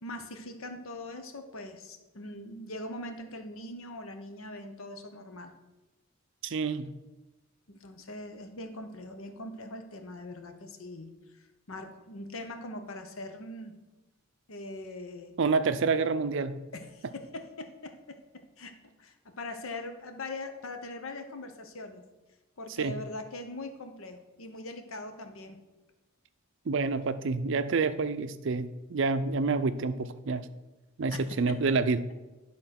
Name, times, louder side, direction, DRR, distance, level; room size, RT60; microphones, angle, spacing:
voice 1, 0.0-5.5 7.7-13.7 14.5-15.3 16.7-18.2 18.6-18.7 19.0-22.0 22.6-25.6 31.1-31.6, left 2 dB, 70° left, 6 dB, 0.9 m, -41 dB
voice 2, 6.4-6.9 15.4-16.6 22.8-23.0 26.7-30.5 31.0-32.0, right 4 dB, 60° right, 11 dB, 0.5 m, -28 dB
10.0 x 3.8 x 5.8 m, 1.1 s
head